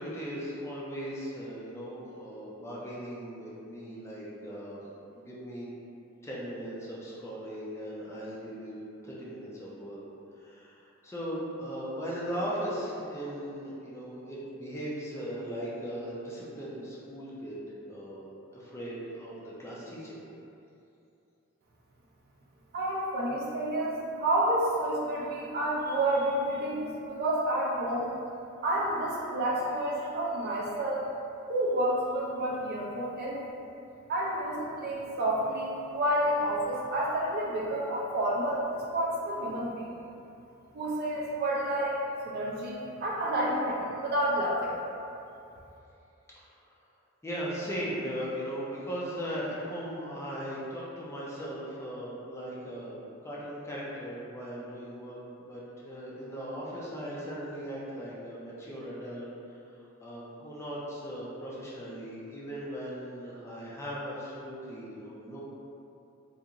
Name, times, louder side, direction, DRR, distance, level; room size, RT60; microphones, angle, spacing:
voice 1, 0.0-4.8 5.1-5.7 6.2-8.8 9.0-10.0 10.4-17.6 17.8-18.2 18.5-20.2 46.3-46.4 47.2-55.2 55.5-59.6 60.0-65.4, equal, 15° left, -7 dB, 0.4 m, -38 dB
voice 2, 22.7-28.2 28.6-31.1 31.5-33.5 34.1-39.9 40.7-42.0 42.2-44.8, right 1 dB, 50° right, -4 dB, 0.4 m, -29 dB
2.4 x 2.4 x 2.8 m, 2.7 s
head